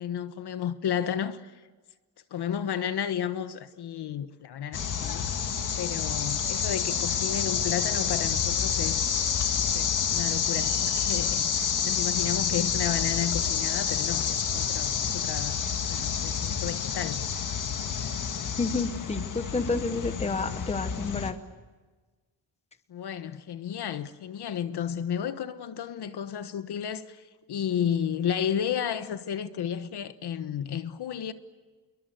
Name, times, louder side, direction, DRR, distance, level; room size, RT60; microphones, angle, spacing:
voice 1, 0.0-1.5 2.3-5.3 5.8-9.0 9.5-17.3 22.9-31.3, left 9 dB, 60° left, 1.4 m, -32 dB
sound 1, 4.7-21.3, left 7 dB, 45° left, 1.9 m, -28 dB
voice 2, 18.6-21.4, left 3 dB, 15° left, 1.1 m, -30 dB
28.0 x 22.5 x 7.9 m
wide cardioid pair, 165°, 45 cm